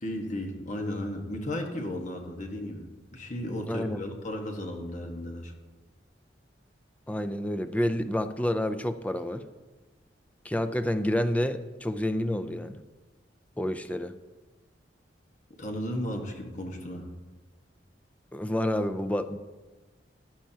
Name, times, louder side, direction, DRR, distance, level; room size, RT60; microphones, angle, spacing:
voice 1, 0.0-2.9 3.1-5.5 15.6-17.1, left 1 dB, 45° left, 2 dB, 1.4 m, -34 dB
voice 2, 3.7-4.0 7.1-9.4 10.4-12.8 13.6-14.1 18.3-19.4, left 1 dB, 10° left, 10 dB, 0.4 m, -29 dB
14.5 x 10.0 x 2.8 m, 1.2 s
head